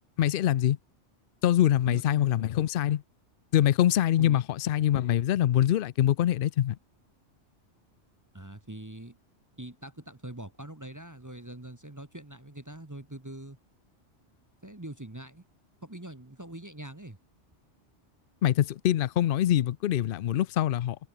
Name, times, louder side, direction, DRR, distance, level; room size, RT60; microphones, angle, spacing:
voice 1, 0.2-0.8 1.4-3.0 3.5-6.8 18.4-21.0, left 12 dB, 60° left, 0.6 m, -24 dB
voice 2, 1.9-2.3 4.2-4.4 8.3-9.2 9.6-13.6 14.6-15.4 15.8-17.2, right 1 dB, 15° right, 1.2 m, -43 dB
omnidirectional pair, 1.2 m